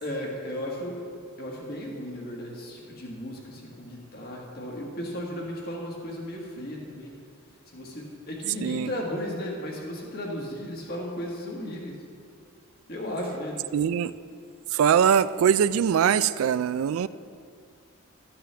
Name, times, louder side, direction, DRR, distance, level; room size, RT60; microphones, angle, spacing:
voice 1, 0.0-1.0 1.4-7.1 7.7-12.0 12.9-13.6, left 1 dB, 45° left, -2 dB, 1.6 m, -35 dB
voice 2, 8.6-8.9 13.7-14.1 14.7-17.1, right 8 dB, 75° right, 15 dB, 0.3 m, -22 dB
13.0 x 9.6 x 3.4 m, 2.3 s
head